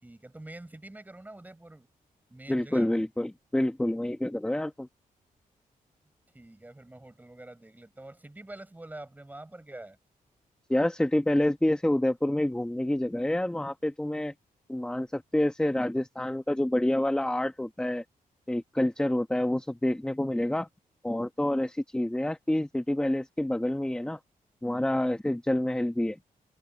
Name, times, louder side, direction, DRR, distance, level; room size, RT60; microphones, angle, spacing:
voice 1, 0.0-1.9 2.3-3.1 6.3-10.0, right 1 dB, 10° right, 6.5 m, -46 dB
voice 2, 2.5-4.9 10.7-14.3 14.7-18.0 18.5-20.7 21.0-24.2 24.6-26.2, left 1 dB, 5° left, 1.1 m, -28 dB
open air
wide cardioid pair, 145°, 15 cm